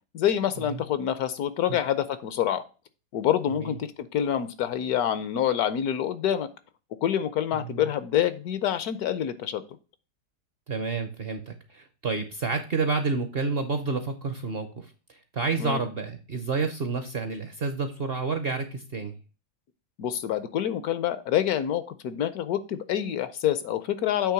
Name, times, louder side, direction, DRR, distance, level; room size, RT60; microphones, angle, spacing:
voice 1, 0.1-2.6 3.1-6.5 7.0-9.6 15.6-15.8 20.0-24.3, left 10 dB, 70° left, 13 dB, 1.0 m, -27 dB
voice 2, 10.7-19.2, right 4 dB, 55° right, 7 dB, 0.7 m, -30 dB
8.4 x 3.3 x 5.7 m, 0.34 s
omnidirectional pair, 1.8 m